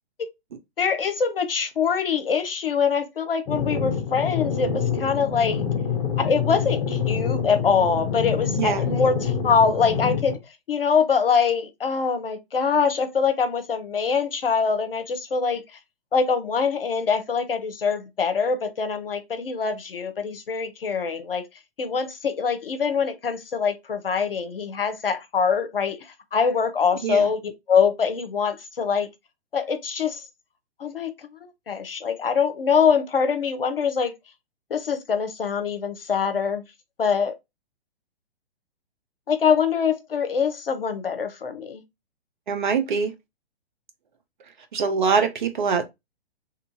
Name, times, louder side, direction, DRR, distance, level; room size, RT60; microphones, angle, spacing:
voice 1, 0.8-5.6 6.2-10.4 10.7-15.6 16.1-21.4 21.8-29.1 29.5-30.2 30.8-31.1 31.7-34.1 34.7-36.6 37.0-37.3 39.3-41.8, left 6 dB, 65° left, 0.7 m, -24 dB
sound 1, 3.5-10.4, left 7 dB, 30° left, 0.9 m, -26 dB
voice 2, 42.5-43.1 44.7-45.9, right 5 dB, 50° right, 0.7 m, -23 dB
2.9 x 2.5 x 2.5 m
figure-of-eight pair, 120°, 30 cm